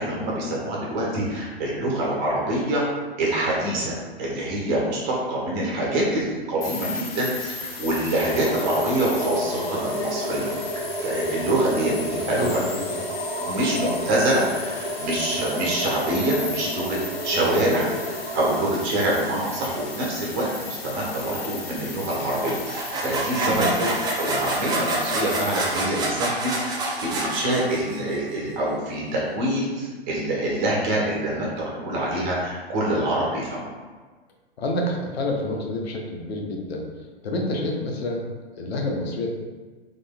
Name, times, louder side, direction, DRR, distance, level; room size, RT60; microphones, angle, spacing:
voice 1, 0.0-2.8 3.2-10.5 11.0-12.0 12.3-12.6 13.4-17.0 17.2-33.7, right 1 dB, 45° right, -4 dB, 1.4 m, -25 dB
sound 1, 6.6-25.8, left 4 dB, 35° left, 1.0 m, -36 dB
sound 2, 8.2-18.8, right 1 dB, 80° right, 0.9 m, -31 dB
voice 2, 12.3-12.8 13.7-14.0 23.4-23.8 34.6-36.8 37.2-38.3 38.6-39.3, left 1 dB, 70° left, 1 dB, 0.8 m, -28 dB
sound 3, 22.5-28.1, right 2 dB, 15° right, 0.4 m, -27 dB
3.8 x 3.5 x 2.2 m, 1.3 s
figure-of-eight pair, 105°, 32 cm